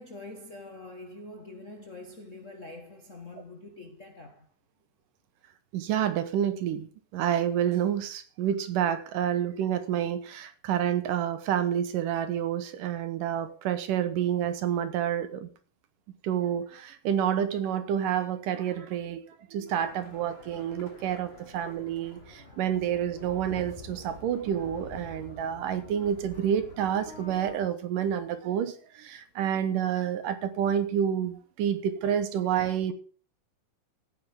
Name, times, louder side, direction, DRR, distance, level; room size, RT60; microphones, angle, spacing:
voice 1, 0.0-4.5 32.8-32.9, left 2 dB, 75° left, 0.7 m, -45 dB
voice 2, 5.7-15.5 16.2-19.2 19.5-32.9, right 9 dB, 75° right, 2.6 m, -29 dB
sound 1, 19.7-27.5, left 2 dB, 20° left, 2.3 m, -47 dB
16.0 x 9.6 x 3.6 m
omnidirectional pair, 4.0 m